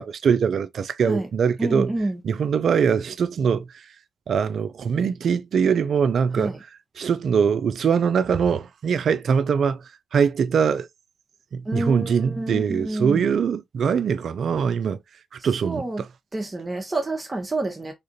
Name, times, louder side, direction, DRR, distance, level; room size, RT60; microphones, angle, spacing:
voice 1, 0.0-1.9 2.2-3.6 4.3-6.5 7.0-9.8 10.1-10.9 11.5-15.0 15.4-16.1, right 6 dB, 65° right, 0.4 m, -22 dB
voice 2, 1.6-2.2 6.4-6.6 11.6-13.3 15.4-16.0 16.3-17.9, right 2 dB, 25° right, 0.9 m, -28 dB
3.6 x 2.5 x 2.8 m
hypercardioid pair, 40°, 0 cm